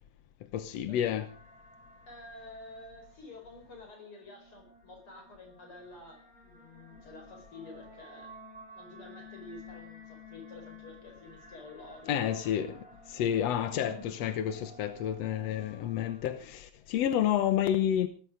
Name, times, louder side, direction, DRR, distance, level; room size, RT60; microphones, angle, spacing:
voice 1, 0.5-1.3 12.1-18.1, left 10 dB, 65° left, 1.7 m, -30 dB
sound 1, 1.0-16.6, left 1 dB, ahead, 5.2 m, -53 dB
voice 2, 2.1-8.4 8.7-12.5, left 2 dB, 40° left, 5.6 m, -50 dB
18.5 x 14.0 x 5.1 m
omnidirectional pair, 4.0 m